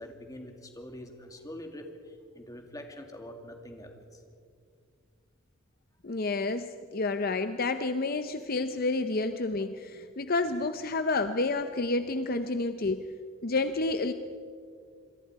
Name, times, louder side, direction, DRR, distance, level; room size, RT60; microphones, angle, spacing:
voice 1, 0.0-4.2, left 1 dB, 20° left, 4 dB, 2.3 m, -44 dB
voice 2, 6.0-13.1 13.4-14.1, left 3 dB, 50° left, 9 dB, 0.7 m, -29 dB
27.0 x 22.0 x 4.8 m, 2.2 s
head